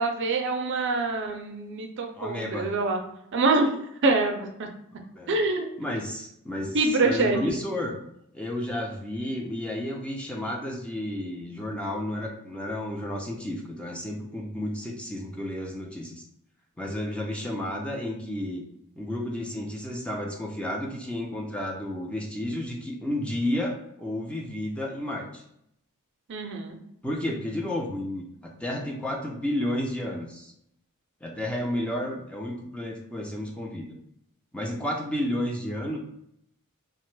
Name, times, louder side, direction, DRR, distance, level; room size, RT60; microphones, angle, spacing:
voice 1, 0.0-3.0 3.3-4.7 5.3-5.7 6.7-7.6 26.3-26.8, right 3 dB, 55° right, 4 dB, 0.4 m, -25 dB
voice 2, 2.1-2.7 5.2-5.4 5.8-7.9 8.3-16.2 16.8-18.6 19.0-25.4 27.0-30.5 31.2-34.0 34.5-36.0, left 1 dB, 5° left, -1 dB, 0.4 m, -32 dB
2.8 x 2.1 x 3.1 m, 0.72 s
head